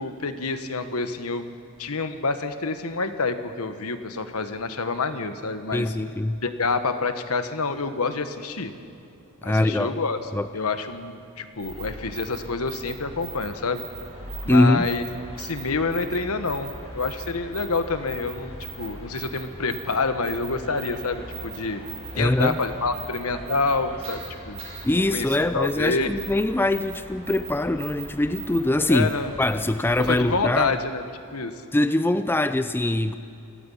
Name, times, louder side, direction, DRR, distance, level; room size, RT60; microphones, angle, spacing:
voice 1, 0.0-5.9 6.4-8.7 9.4-10.2 10.5-13.8 14.4-15.0 15.4-21.8 22.1-24.6 24.9-26.1 28.9-29.3 30.0-31.0 31.3-31.5, left 3 dB, 70° left, 9 dB, 1.4 m, -27 dB
voice 2, 5.7-6.4 9.4-9.9 10.3-10.5 14.5-14.9 22.1-22.6 24.8-29.1 29.4-30.8 31.7-33.1, left 1 dB, 10° left, 11 dB, 0.4 m, -22 dB
sound 1, 11.5-30.5, right 2 dB, 30° right, 6.9 m, -39 dB
28.5 x 17.5 x 5.7 m, 2.7 s
head